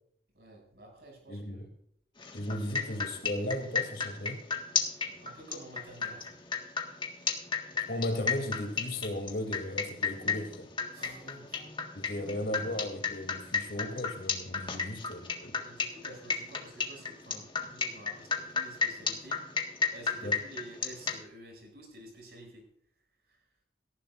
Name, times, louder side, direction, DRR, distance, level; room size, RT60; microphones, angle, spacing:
voice 1, 0.3-1.7 5.0-6.3 10.9-11.7 14.5-14.9 15.6-19.4 19.9-22.6 23.3-23.4, right 1 dB, 60° right, 6.7 m, -50 dB
voice 2, 1.3-1.7 2.3-4.4 7.9-10.7 11.9-15.6 20.2-20.4, left 1 dB, 65° left, 2.8 m, -36 dB
sound 1, 2.2-21.2, left 5 dB, 25° left, 1.6 m, -33 dB
18.5 x 14.0 x 2.5 m
head